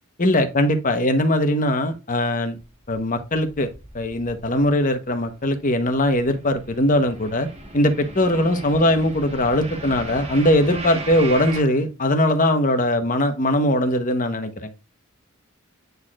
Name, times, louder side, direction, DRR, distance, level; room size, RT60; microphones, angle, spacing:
voice 1, 0.2-2.6 2.9-3.7 3.9-7.5 7.7-14.7, left 1 dB, 40° left, 1.0 m, -20 dB
sound 1, 2.6-4.9 5.2-11.6, right 2 dB, 30° right, 1.3 m, -37 dB
9.4 x 4.2 x 2.4 m
head